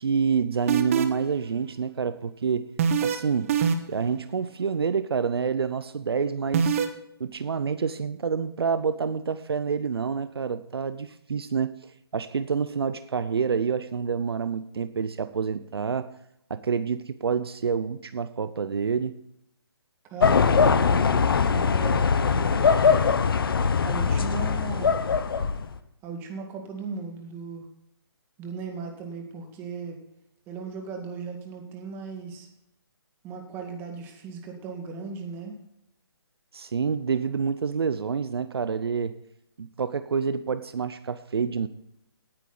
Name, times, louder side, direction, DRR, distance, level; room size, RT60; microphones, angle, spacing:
voice 1, 0.0-2.7 3.0-3.5 3.9-6.8 7.2-16.1 16.5-19.2 36.5-39.1 39.6-41.7, right 6 dB, 65° right, 12 dB, 0.8 m, -28 dB
sound 1, 0.7-1.3 2.8-3.2 3.5-4.0 6.5-6.9, right 7 dB, 30° right, 1.2 m, -23 dB
voice 2, 20.1-23.1 23.8-25.0 26.0-27.7 28.4-30.0 30.5-32.5 33.2-35.5, right 4 dB, 15° right, 3 dB, 2.0 m, -37 dB
sound 2, 20.2-25.8, left 5 dB, 60° left, 1.1 m, -21 dB
18.0 x 9.1 x 4.0 m, 0.78 s
hypercardioid pair, 155°, 14 cm